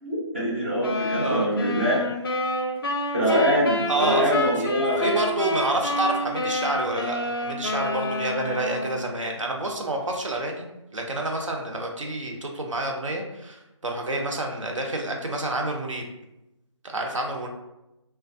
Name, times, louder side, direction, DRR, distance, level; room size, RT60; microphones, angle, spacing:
voice 1, 0.0-2.0 3.1-5.2, equal, 25° right, -5 dB, 0.5 m, -24 dB
sound 1, 0.8-9.2, left 1 dB, 50° left, 0.4 m, -28 dB
voice 2, 1.1-1.5 3.3-3.4 3.9-4.7 5.0-10.7 10.9-16.1 16.8-17.5, right 2 dB, 80° right, 2 dB, 0.6 m, -28 dB
2.2 x 2.2 x 2.6 m, 0.95 s
figure-of-eight pair, 160°, 16 cm